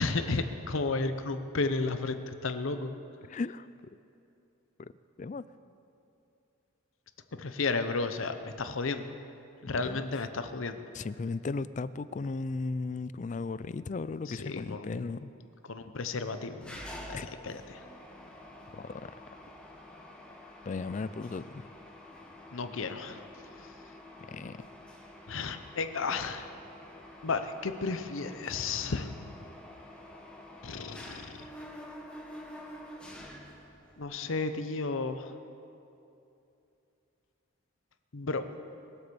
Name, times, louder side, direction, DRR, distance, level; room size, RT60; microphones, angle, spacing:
voice 1, 0.0-2.9 7.4-9.1 9.6-10.8 14.3-15.1 15.7-17.8 22.5-23.2 25.3-26.5 27.2-29.2 30.6-31.4 34.0-35.3 38.1-38.4, left 3 dB, 75° left, 9 dB, 0.8 m, -33 dB
voice 2, 3.3-3.7 4.8-4.9 5.2-5.5 9.7-10.2 10.9-15.3 17.1-17.3 18.7-19.1 20.7-21.7 24.3-24.6, left 3 dB, 35° left, 16 dB, 0.3 m, -36 dB
Mechanisms, 16.6-34.0, left 1 dB, 5° left, 1.3 m, -48 dB
21.0 x 8.0 x 7.0 m, 2.8 s
head